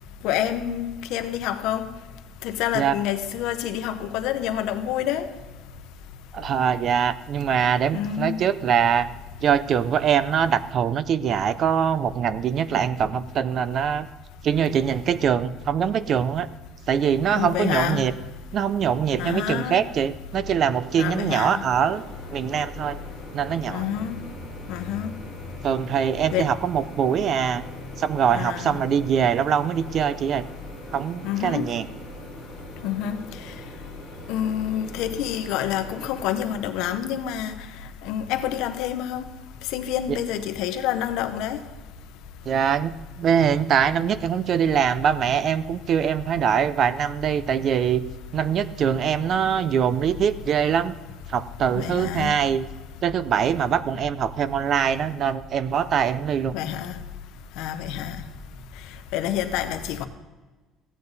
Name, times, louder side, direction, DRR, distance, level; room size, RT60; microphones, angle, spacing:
voice 1, 0.2-1.9 2.4-5.3 7.9-8.5 17.3-18.0 19.2-19.8 21.0-21.7 23.7-24.1 24.7-25.1 26.3-26.5 28.3-28.8 31.2-31.7 32.8-33.2 34.3-37.5 38.0-39.3 39.7-41.6 51.8-52.4 56.5-56.9 57.6-58.2 59.1-60.1, left 10 dB, 75° left, 0.9 m, -27 dB
voice 2, 6.3-9.1 9.4-14.1 14.4-16.5 16.9-18.1 18.5-22.0 22.3-23.0 23.3-23.9 25.6-27.6 28.0-30.4 30.9-31.9 42.4-48.0 48.3-51.0 51.3-52.6 53.0-56.6, right 8 dB, 35° right, 0.4 m, -23 dB
Microwave oven, 20.3-36.5, right 1 dB, 50° right, 4.2 m, -43 dB
15.0 x 8.9 x 4.0 m
cardioid pair, 175°, 0 cm